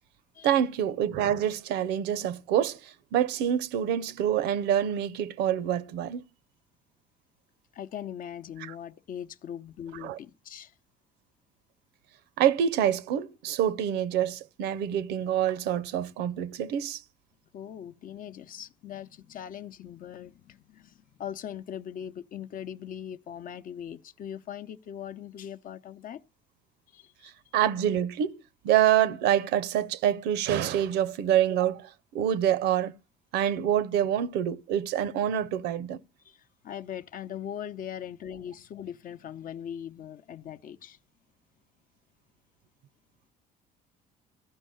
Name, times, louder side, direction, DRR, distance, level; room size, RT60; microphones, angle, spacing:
voice 1, 0.4-6.2 10.0-10.2 12.4-17.0 27.5-33.0 33.3-36.0, right 10 dB, 85° right, 0.7 m, -26 dB
voice 2, 7.7-10.7 17.5-26.2 26.9-27.3 36.2-41.0, left 9 dB, 55° left, 0.7 m, -40 dB
14.0 x 5.5 x 9.2 m
cardioid pair, 110°, 17 cm